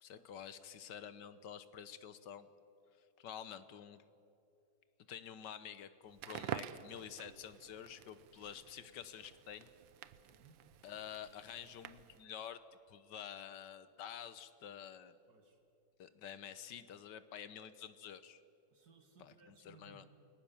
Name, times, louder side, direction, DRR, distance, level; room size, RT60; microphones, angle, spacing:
voice 1, 0.0-2.5 3.2-4.0 5.1-9.7 10.8-12.6 12.9-15.2 16.0-18.4 19.2-20.0, left 9 dB, 65° left, 13 dB, 1.5 m, -49 dB
Crackle, 6.1-12.3, right 11 dB, 90° right, 1.5 m, -49 dB
voice 2, 10.2-10.6 15.3-15.6 18.7-20.1, right 4 dB, 55° right, 5 dB, 2.6 m, -63 dB
29.0 x 19.5 x 7.2 m, 2.9 s
omnidirectional pair, 2.1 m